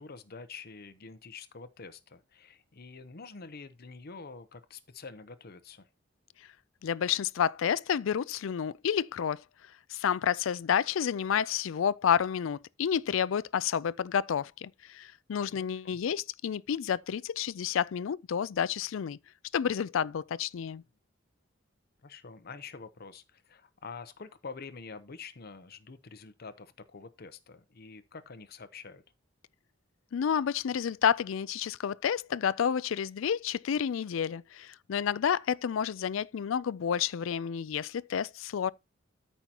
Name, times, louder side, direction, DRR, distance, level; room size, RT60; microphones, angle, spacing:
voice 1, 0.0-5.9 15.6-16.0 22.0-29.0, left 4 dB, 50° left, 0.8 m, -47 dB
voice 2, 6.8-9.4 9.9-19.2 19.5-20.8 30.1-38.7, left 8 dB, 70° left, 0.4 m, -30 dB
13.5 x 5.6 x 2.9 m
head